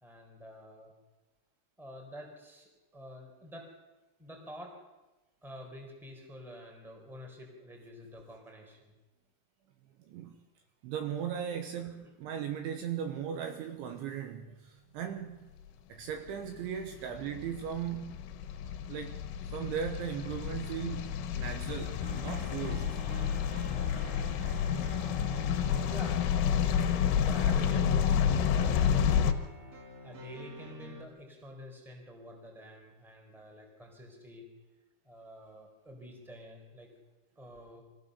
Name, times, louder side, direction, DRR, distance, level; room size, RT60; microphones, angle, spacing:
voice 1, 0.0-0.9 1.8-3.7 4.2-4.7 5.4-8.9 11.8-12.1 25.8-29.4 30.0-34.4 35.0-36.9 37.4-37.8, equal, ahead, 3.4 m, -48 dB
voice 2, 10.0-10.5 10.8-15.5 15.9-18.2 18.9-19.2 19.5-23.0, right 8 dB, 75° right, 3.2 m, -38 dB
sound 1, 16.5-29.3, left 8 dB, 75° left, 3.5 m, -30 dB
sound 2, 22.0-31.0, right 1 dB, 50° right, 1.6 m, -47 dB
25.0 x 15.5 x 6.9 m
omnidirectional pair, 6.0 m